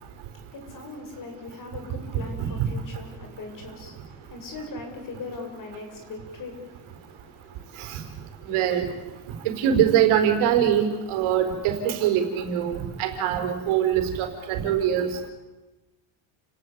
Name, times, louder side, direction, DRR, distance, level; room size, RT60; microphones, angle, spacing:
voice 1, 0.0-8.6 9.2-9.5, left 3 dB, 40° left, 4 dB, 7.3 m, -41 dB
voice 2, 8.5-8.9 9.6-15.3, right 9 dB, 75° right, 7 dB, 4.6 m, -23 dB
30.0 x 18.0 x 8.7 m, 1.1 s
cardioid pair, 145°, 50 cm